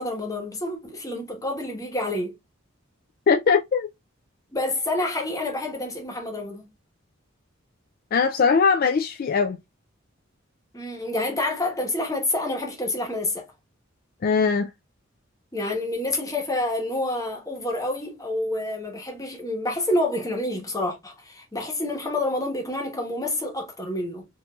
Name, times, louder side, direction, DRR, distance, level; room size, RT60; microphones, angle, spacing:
voice 1, 0.0-2.3 4.5-6.7 10.7-13.4 15.5-24.3, left 1 dB, 15° left, 1.1 m, -28 dB
voice 2, 3.3-3.9 8.1-9.6 14.2-14.7, left 5 dB, 45° left, 0.3 m, -20 dB
4.5 x 2.6 x 2.3 m
head